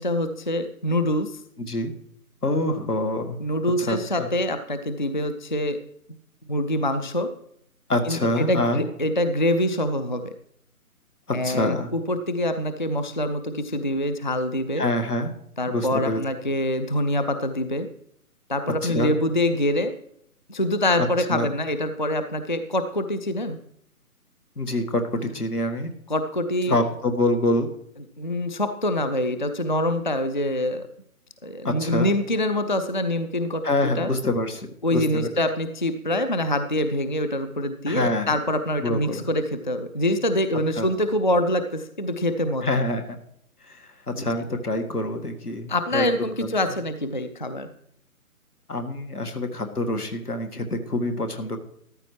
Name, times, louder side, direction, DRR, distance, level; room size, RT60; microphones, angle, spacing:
voice 1, 0.0-1.4 3.4-5.8 6.5-7.3 8.1-10.3 11.3-14.8 15.6-17.9 18.5-19.9 20.5-23.6 26.1-26.8 28.2-30.9 31.4-34.1 34.8-42.7 44.2-44.3 45.7-47.7, left 1 dB, 35° left, 9 dB, 0.4 m, -25 dB
voice 2, 1.6-1.9 2.4-3.4 3.8-4.3 7.9-8.8 11.3-11.9 14.8-15.3 15.7-16.2 18.8-19.1 21.0-21.5 24.6-25.9 26.7-27.7 31.6-32.1 33.6-35.3 37.9-38.4 38.8-39.3 40.8-40.9 42.6-43.2 43.6-46.1 46.4-46.5 48.7-51.6, left 1 dB, 85° left, 5 dB, 1.8 m, -26 dB
13.5 x 12.5 x 3.2 m, 0.70 s
figure-of-eight pair, 145°, 45 cm